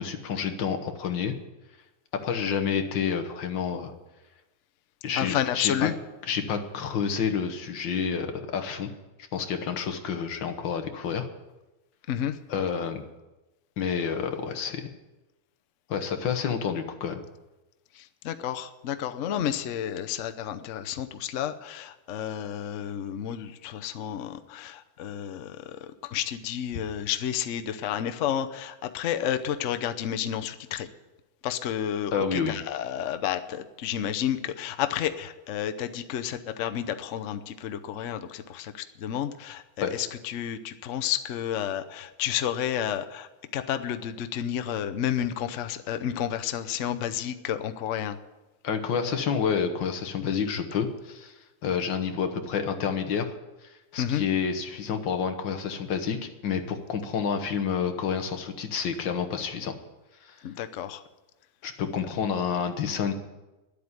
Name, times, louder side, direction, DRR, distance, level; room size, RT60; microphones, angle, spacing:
voice 1, 0.0-1.3 2.2-3.9 5.0-5.9 6.2-8.9 9.3-11.3 12.5-13.0 13.8-14.9 15.9-17.2 32.1-32.6 39.8-39.9 48.6-51.3 51.6-53.3 53.6-59.7 60.2-60.4 61.6-63.1, left 7 dB, 65° left, 6 dB, 1.8 m, -29 dB
voice 2, 5.2-6.0 12.1-12.4 18.2-25.8 26.1-30.9 31.4-38.7 39.0-43.3 43.5-48.2 54.0-54.2 60.4-61.0, left 10 dB, 90° left, 9 dB, 0.6 m, -31 dB
11.0 x 8.5 x 9.6 m, 1.1 s
omnidirectional pair, 2.3 m